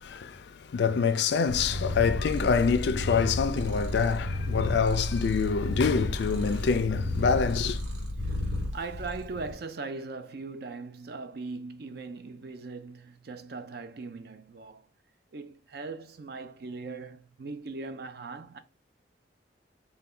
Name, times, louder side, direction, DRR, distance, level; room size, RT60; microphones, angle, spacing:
voice 1, 0.0-7.8, left 5 dB, 60° left, 0.4 m, -26 dB
Purr, 1.5-9.5, left 1 dB, 85° right, 1.2 m, -32 dB
voice 2, 8.7-14.8 15.3-18.6, right 3 dB, 55° right, 0.4 m, -39 dB
4.3 x 2.2 x 3.7 m
head